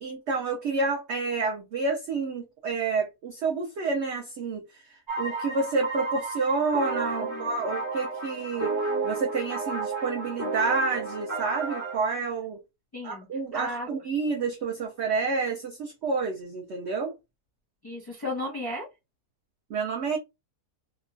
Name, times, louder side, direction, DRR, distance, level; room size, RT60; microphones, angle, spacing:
voice 1, 0.0-8.7 9.0-12.6 13.0-17.1 19.7-20.2, right 4 dB, 70° right, 0.6 m, -29 dB
sound 1, 5.1-12.0, right 3 dB, 20° right, 1.0 m, -32 dB
voice 2, 7.1-7.5 12.9-13.9 17.8-18.9, left 1 dB, 20° left, 0.6 m, -35 dB
2.9 x 2.2 x 2.5 m
omnidirectional pair, 1.7 m